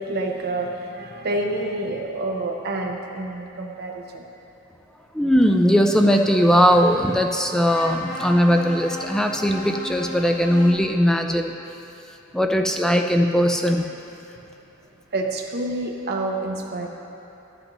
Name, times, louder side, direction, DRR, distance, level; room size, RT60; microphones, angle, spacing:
voice 1, 0.0-4.2 15.1-16.9, right 2 dB, 50° right, 1 dB, 0.7 m, -28 dB
voice 2, 5.1-11.5 12.3-13.8, equal, 5° left, 3 dB, 0.3 m, -19 dB
sound 1, 5.3-10.7, equal, 35° left, 1.9 m, -36 dB
12.0 x 7.9 x 3.0 m, 2.9 s
head